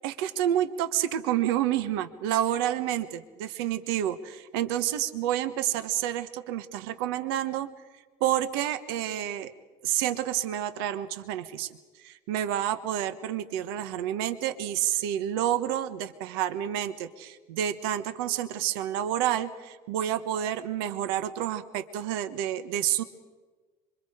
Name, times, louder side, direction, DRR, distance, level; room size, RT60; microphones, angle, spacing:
voice 1, 0.0-7.7 8.2-9.5 9.8-11.7 12.0-23.0, right 11 dB, 90° right, 11 dB, 1.3 m, -29 dB
26.5 x 25.0 x 5.0 m, 1.3 s
cardioid pair, 135°, 12 cm